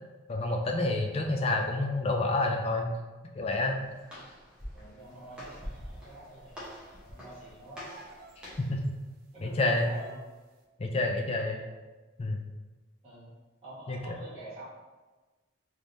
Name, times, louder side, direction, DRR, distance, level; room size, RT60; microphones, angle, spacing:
voice 1, 0.3-3.0 3.3-3.8 8.6-8.8 9.4-9.9 10.8-11.6 12.2-12.4 13.9-14.2, left 2 dB, 30° left, 2 dB, 0.3 m, -28 dB
Walk footsteps, 3.5-8.8, equal, 5° right, 0.8 m, -46 dB
voice 2, 4.7-7.9 9.3-10.2 11.4-11.7 13.0-13.3 13.6-14.7, right 1 dB, 30° right, -11 dB, 1.4 m, -47 dB
sound 1, 5.4-5.7 7.8-8.4 8.8-8.9 9.7-10.4, right 2 dB, 45° right, 0.4 m, -49 dB
3.4 x 3.1 x 2.6 m, 1.3 s
head